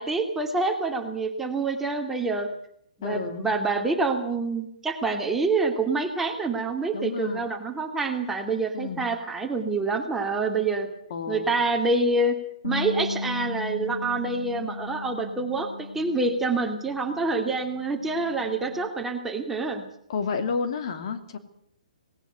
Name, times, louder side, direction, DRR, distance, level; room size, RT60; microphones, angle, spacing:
voice 1, 0.0-2.5 3.0-10.9 11.3-12.4 12.6-19.9, right 3 dB, 5° right, 3 dB, 2.4 m, -27 dB
voice 2, 3.0-3.5 6.9-7.4 8.7-9.1 11.1-11.5 20.1-21.4, left 5 dB, 50° left, 7 dB, 2.7 m, -30 dB
Bass guitar, 12.6-18.9, left 3 dB, 75° left, 1.5 m, -36 dB
19.0 x 18.5 x 8.2 m, 0.68 s
figure-of-eight pair, 125°, 4 cm